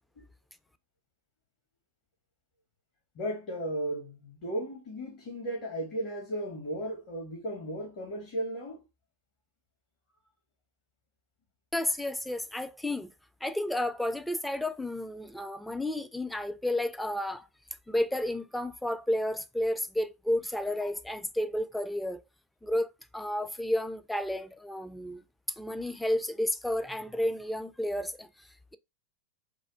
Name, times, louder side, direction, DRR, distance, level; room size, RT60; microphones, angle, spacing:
voice 1, 3.2-8.8, right 1 dB, 40° left, 1.0 m, -35 dB
voice 2, 11.7-13.1 13.4-17.5 17.9-22.2 22.6-25.2 25.5-28.5, left 1 dB, 5° left, 0.3 m, -31 dB
3.4 x 2.1 x 3.7 m
figure-of-eight pair, 90°, 0 cm